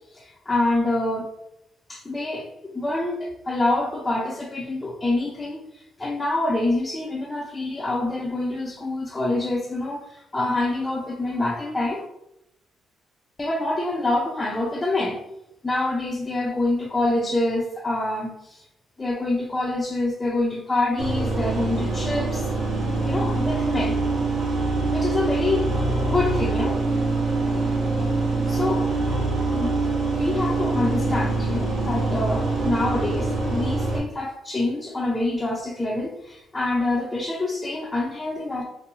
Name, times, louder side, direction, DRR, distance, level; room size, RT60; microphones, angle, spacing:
voice 1, 0.1-1.3 1.9-2.5 2.7-12.1 13.4-15.2 15.6-18.6 19.0-22.5 23.0-24.0 24.9-25.7 26.0-26.8 28.5-28.9 29.5-29.8 30.2-38.6, left 2 dB, 20° left, -3 dB, 0.6 m, -26 dB
sound 1, 21.0-34.0, right 3 dB, 55° right, 1.2 m, -24 dB
4.4 x 2.2 x 2.6 m, 0.84 s
cardioid pair, 90°, 0 cm